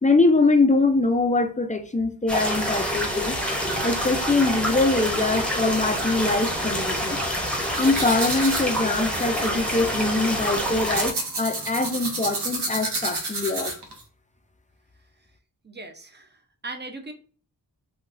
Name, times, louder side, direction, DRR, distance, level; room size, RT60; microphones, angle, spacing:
voice 1, 0.0-3.4 3.8-7.2 7.8-13.7, left 3 dB, 20° left, 0.4 m, -23 dB
sound 1, 2.3-11.1, equal, 5° left, 0.8 m, -27 dB
sound 2, 7.7-14.0, right 2 dB, 75° right, 0.8 m, -31 dB
voice 2, 15.6-17.1, right 2 dB, 25° right, 0.6 m, -39 dB
3.8 x 2.2 x 2.5 m
wide cardioid pair, 75°, 40 cm